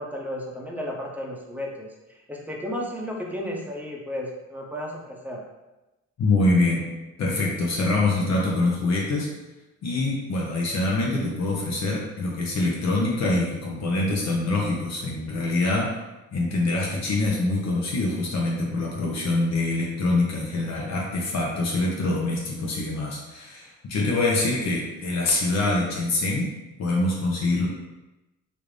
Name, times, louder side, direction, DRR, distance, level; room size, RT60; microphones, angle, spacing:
voice 1, 0.0-5.4, equal, 5° right, -1 dB, 0.7 m, -33 dB
voice 2, 6.2-6.8 7.2-9.3 9.8-15.9 16.3-26.5 26.8-27.7, left 2 dB, 60° left, -3 dB, 0.9 m, -24 dB
3.2 x 2.6 x 3.2 m, 1.0 s
cardioid pair, 90°, 30 cm